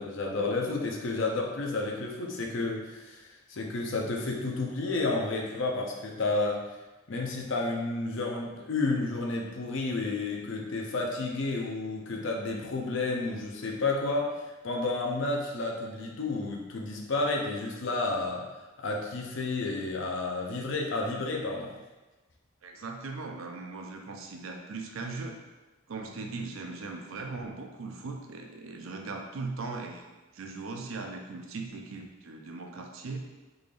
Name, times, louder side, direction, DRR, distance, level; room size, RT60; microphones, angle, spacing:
voice 1, 0.0-6.6 7.1-18.5 18.8-21.7, left 3 dB, 65° left, 0 dB, 0.6 m, -31 dB
voice 2, 22.6-25.4 25.9-30.0 30.3-33.2, right 3 dB, 80° right, 3 dB, 0.5 m, -39 dB
3.8 x 3.3 x 2.5 m, 1.2 s
head